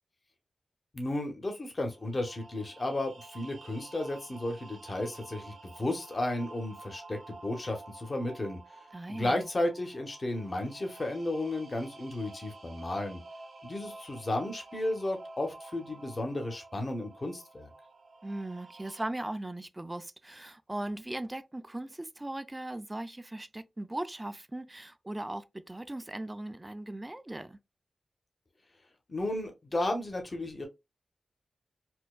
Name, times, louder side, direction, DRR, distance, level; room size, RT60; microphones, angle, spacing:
voice 1, 0.9-8.6 9.1-13.2 13.6-17.7 29.1-30.7, left 1 dB, 40° left, 1.0 m, -33 dB
sound 1, 1.8-19.1, right 2 dB, 75° right, 0.8 m, -50 dB
voice 2, 8.9-9.5 18.2-27.6, right 1 dB, 20° right, 0.4 m, -38 dB
4.3 x 2.3 x 2.3 m
cardioid pair, 70°, 0 cm